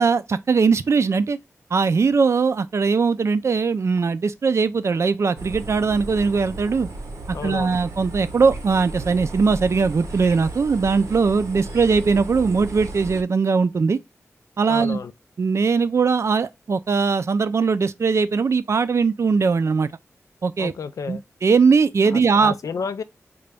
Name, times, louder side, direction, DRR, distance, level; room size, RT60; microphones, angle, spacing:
voice 1, 0.0-1.4 1.7-6.9 7.4-14.0 14.6-15.0 15.4-19.9 20.4-20.7 21.1-22.5, right 5 dB, 60° right, 0.3 m, -20 dB
sound 1, 5.4-13.2, right 2 dB, 85° right, 0.8 m, -35 dB
voice 2, 7.3-7.8 14.7-15.1 20.6-21.2 22.1-23.0, left 5 dB, 90° left, 0.4 m, -31 dB
3.9 x 2.2 x 3.3 m
wide cardioid pair, 65°, 5 cm